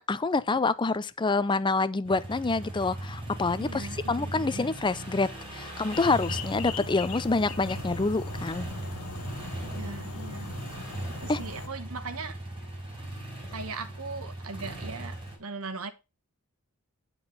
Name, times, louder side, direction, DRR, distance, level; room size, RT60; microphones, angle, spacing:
voice 1, 0.0-8.6 11.3-11.4, left 3 dB, 20° left, 0.5 m, -27 dB
sound 1, 2.0-15.4, right 1 dB, 25° right, 4.3 m, -38 dB
voice 2, 3.6-4.7 9.6-10.5 11.2-12.4 13.5-15.1 15.4-15.9, right 4 dB, 75° right, 1.2 m, -39 dB
sound 2, 5.9-11.7, left 4 dB, 80° left, 1.3 m, -40 dB
9.6 x 4.6 x 5.4 m
head